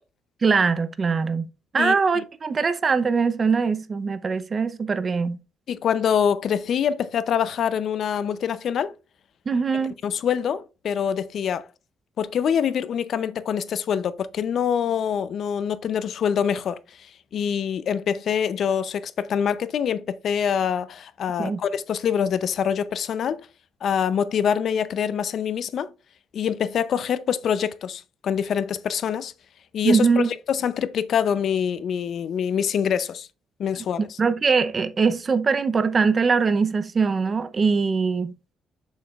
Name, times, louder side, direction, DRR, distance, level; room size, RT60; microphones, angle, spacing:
voice 1, 0.4-1.5 1.7-5.4 9.5-9.9 21.4-21.6 29.8-30.3 34.2-38.3, right 5 dB, 40° right, 0.7 m, -22 dB
voice 2, 5.7-8.9 10.0-11.7 12.2-23.4 23.8-25.9 26.3-29.3 29.7-33.3 33.6-34.2, left 8 dB, 65° left, 0.6 m, -25 dB
7.7 x 7.2 x 2.4 m
cardioid pair, 90°, 0 cm